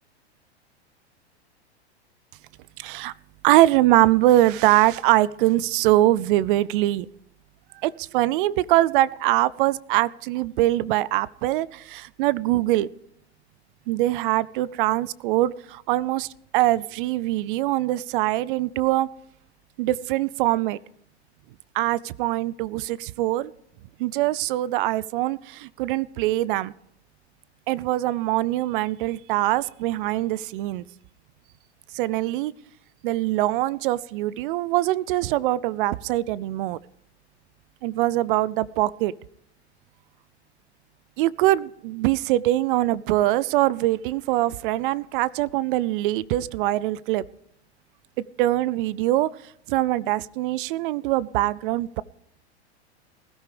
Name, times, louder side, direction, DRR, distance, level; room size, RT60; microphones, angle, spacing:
voice 1, 2.8-3.1 3.4-7.1 7.8-12.9 13.9-19.1 19.8-20.8 21.7-23.5 24.0-26.7 27.7-30.9 31.9-32.5 33.0-36.8 37.8-39.1 41.2-47.2 48.4-52.0, right 16 dB, 50° right, 21 dB, 0.5 m, -23 dB
20.0 x 13.0 x 3.4 m, 0.75 s
hypercardioid pair, 105°, 34 cm